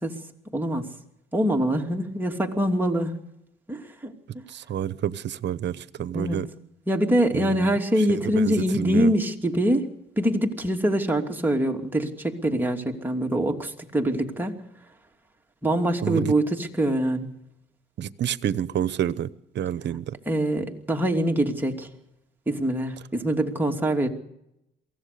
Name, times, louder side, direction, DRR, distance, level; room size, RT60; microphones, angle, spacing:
voice 1, 0.5-0.9 1.3-3.2 3.7-4.4 6.1-6.4 6.9-9.8 10.2-14.6 15.6-17.3 20.3-21.9 22.5-24.1, right 1 dB, 10° right, 2 dB, 2.8 m, -24 dB
voice 2, 4.5-6.5 7.3-7.7 8.1-9.1 16.0-16.3 18.0-20.1, right 10 dB, 65° right, 17 dB, 0.9 m, -29 dB
23.0 x 16.5 x 6.9 m, 0.83 s
cardioid pair, 90°, 20 cm